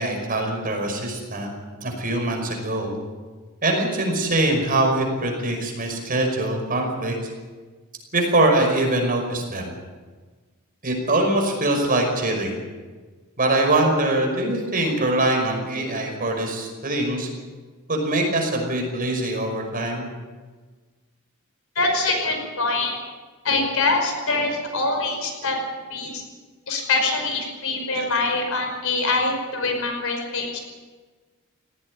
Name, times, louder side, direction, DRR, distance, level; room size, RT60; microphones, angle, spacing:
voice 1, 0.0-1.5 1.8-2.9 3.6-7.1 8.1-9.7 10.8-12.6 13.4-17.3 17.9-20.1, right 2 dB, 40° right, 2 dB, 5.5 m, -23 dB
voice 2, 21.8-22.9 23.4-25.6 25.9-26.2 26.7-30.6, left 3 dB, 65° left, 4 dB, 5.3 m, -24 dB
18.5 x 16.0 x 9.9 m, 1.4 s
head